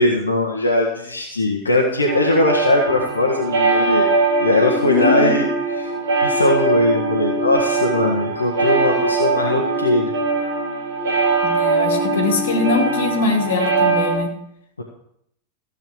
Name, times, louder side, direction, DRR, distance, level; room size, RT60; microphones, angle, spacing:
voice 1, 0.0-4.1 4.4-5.5 5.7-5.9 6.2-10.1 14.8-14.9, left 2 dB, 75° left, -1 dB, 1.7 m, -20 dB
sound 1, 2.1-14.1, right 3 dB, 65° right, 3.9 m, -21 dB
voice 2, 4.8-5.4 11.4-14.3, left 4 dB, 60° left, 2 dB, 2.5 m, -22 dB
15.5 x 8.0 x 4.9 m, 0.72 s
figure-of-eight pair, 90°, 0 cm